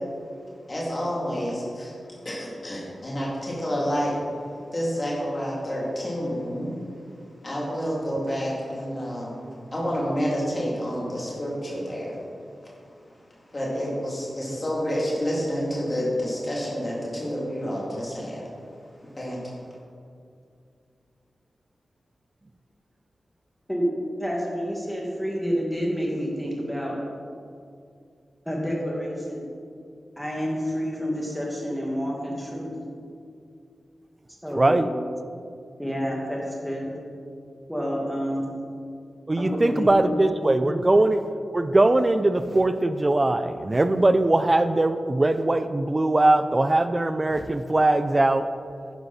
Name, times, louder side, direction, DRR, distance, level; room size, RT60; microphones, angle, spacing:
voice 1, 0.7-1.9 2.2-4.2 4.7-6.8 7.4-9.5 9.7-12.2 13.5-18.5 19.2-19.5, equal, 25° left, -5 dB, 2.7 m, -29 dB
voice 2, 24.2-27.0 28.5-29.4 30.2-32.7 34.4-34.8 35.8-36.9 37.7-38.5 39.4-40.3 40.6-40.7, equal, ahead, -3 dB, 2.0 m, -29 dB
voice 3, 34.6-34.9 39.3-41.2 41.5-48.4, right 2 dB, 20° right, 10 dB, 0.4 m, -21 dB
10.5 x 10.5 x 4.1 m, 2.3 s
wide cardioid pair, 175°, 0 cm